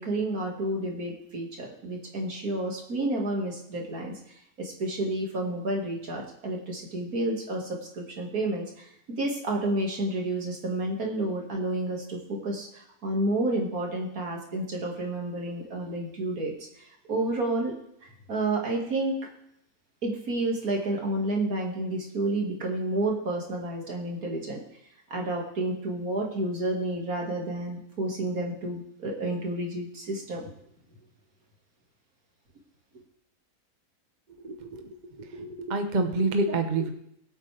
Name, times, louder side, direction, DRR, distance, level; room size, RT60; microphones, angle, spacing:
voice 1, 0.0-17.7 18.0-19.2 20.0-24.6 25.1-30.5, right 2 dB, 70° right, 0 dB, 2.6 m, -30 dB
voice 2, 34.4-36.9, right 3 dB, 35° right, 5 dB, 1.0 m, -28 dB
21.0 x 8.4 x 3.4 m, 0.75 s
omnidirectional pair, 1.6 m